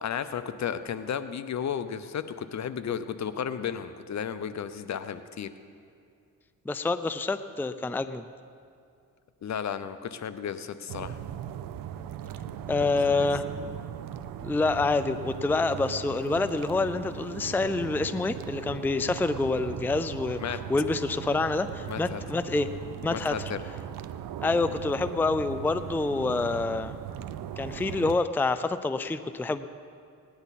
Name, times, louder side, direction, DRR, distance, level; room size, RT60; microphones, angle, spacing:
voice 1, 0.0-5.5 9.4-11.2 12.8-12.9 13.2-13.3 20.4-20.6 21.9-22.2 23.1-23.6, left 8 dB, 55° left, 12 dB, 0.7 m, -33 dB
voice 2, 6.7-8.2 12.7-13.5 14.4-22.7 23.0-23.3 24.4-26.9 27.6-29.7, left 3 dB, 5° left, 12 dB, 0.4 m, -27 dB
sound 1, 10.9-28.2, right 9 dB, 80° right, 0.6 m, -38 dB
19.0 x 10.5 x 4.2 m, 2.4 s
cardioid pair, 75°, 34 cm